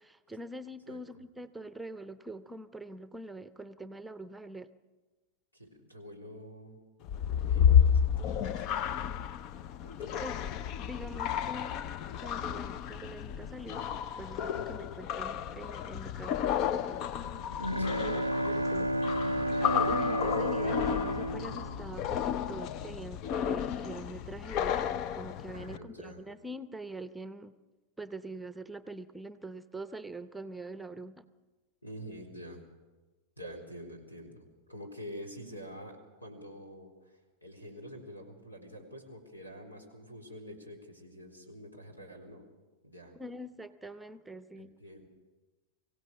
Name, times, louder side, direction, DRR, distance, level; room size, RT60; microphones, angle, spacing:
voice 1, 0.0-4.7 10.2-10.5 10.8-11.8 12.2-13.9 14.2-17.0 18.0-19.2 19.6-27.5 28.0-31.2 43.1-44.7, right 1 dB, 5° right, 12 dB, 0.8 m, -44 dB
voice 2, 5.5-6.8 7.5-9.2 9.8-10.2 14.5-14.8 17.8-18.1 25.5-26.2 31.8-32.6 33.4-42.5 42.8-43.1 44.6-45.1, equal, 85° left, 5 dB, 4.0 m, -47 dB
sound 1, 7.0-25.8, left 9 dB, 40° left, 0.6 m, -31 dB
Bowed string instrument, 17.3-22.7, equal, 90° right, 0.6 m, -32 dB
24.0 x 16.5 x 6.7 m, 1.2 s
figure-of-eight pair, 90°, 0 cm